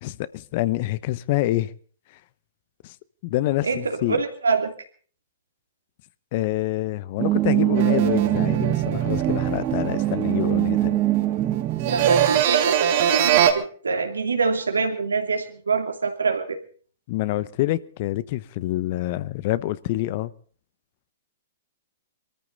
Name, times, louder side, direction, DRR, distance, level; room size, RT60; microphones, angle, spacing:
voice 1, 0.0-1.7 2.8-2.9 3.2-4.2 6.3-11.0 17.1-20.3, left 16 dB, 50° left, 0.9 m, -26 dB
voice 2, 3.6-4.7 11.8-16.6, right 4 dB, 90° right, 2.8 m, -25 dB
sound 1, 7.2-12.4, right 14 dB, 30° right, 1.1 m, -23 dB
sound 2, 7.8-11.3 11.6-13.5, right 10 dB, 55° right, 2.6 m, -23 dB
23.0 x 14.0 x 4.0 m
hypercardioid pair, 120°, 0 cm